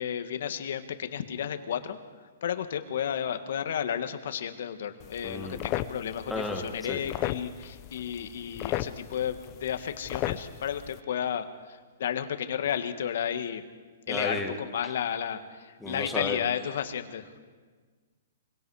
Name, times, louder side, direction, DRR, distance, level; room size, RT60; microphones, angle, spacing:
voice 1, 0.0-2.0 2.4-13.6 14.1-17.3, left 9 dB, 60° left, 9 dB, 1.6 m, -32 dB
sound 1, 5.0-11.0, left 14 dB, 25° left, 0.7 m, -36 dB
voice 2, 5.2-5.6 6.3-7.0 14.1-14.5 15.8-16.4, left 3 dB, 5° left, 1 dB, 1.8 m, -33 dB
24.5 x 23.0 x 4.8 m, 1.5 s
hypercardioid pair, 160°, 0 cm